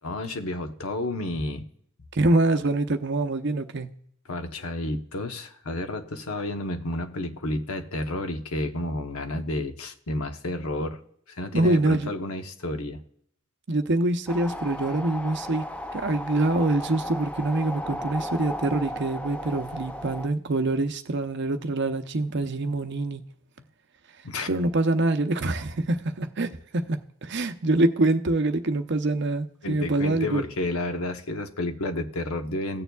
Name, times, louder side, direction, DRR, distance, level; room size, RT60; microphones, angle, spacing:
voice 1, 0.0-1.7 4.3-11.0 11.3-13.0 24.2-24.5 29.6-32.8, left 1 dB, 75° left, 0.9 m, -31 dB
voice 2, 2.1-3.9 11.5-12.1 13.7-15.6 15.9-23.2 24.5-30.4, right 2 dB, 50° right, 0.7 m, -25 dB
sound 1, 14.3-20.3, equal, 5° left, 0.4 m, -35 dB
16.5 x 6.9 x 2.3 m
head